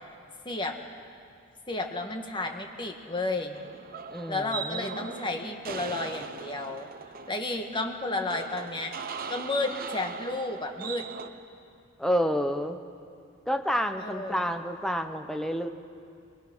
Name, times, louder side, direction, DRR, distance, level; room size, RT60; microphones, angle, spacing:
voice 1, 0.4-0.8 1.7-3.6 4.3-6.9 7.3-8.9 9.3-11.0 14.0-14.5, left 2 dB, 25° left, 4 dB, 1.5 m, -32 dB
sound 1, 3.5-11.3, right 5 dB, 45° right, 0.8 m, -40 dB
voice 2, 4.1-4.9 12.0-12.8 13.5-15.7, equal, ahead, 6 dB, 0.9 m, -29 dB
22.5 x 21.5 x 6.2 m, 2.4 s
head